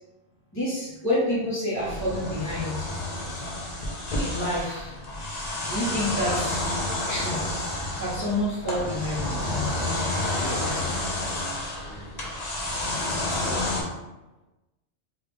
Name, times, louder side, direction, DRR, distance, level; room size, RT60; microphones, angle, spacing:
voice 1, 0.5-2.8 4.2-4.9 5.6-6.6 7.1-7.4 8.0-9.4, left 1 dB, 15° left, -11 dB, 0.9 m, -28 dB
sound 1, 1.8-13.8, left 2 dB, 45° left, 0.7 m, -30 dB
voice 2, 10.3-12.3 13.4-13.9, left 1 dB, 75° left, -1 dB, 1.1 m, -41 dB
3.2 x 2.3 x 3.4 m, 1.0 s
omnidirectional pair, 1.2 m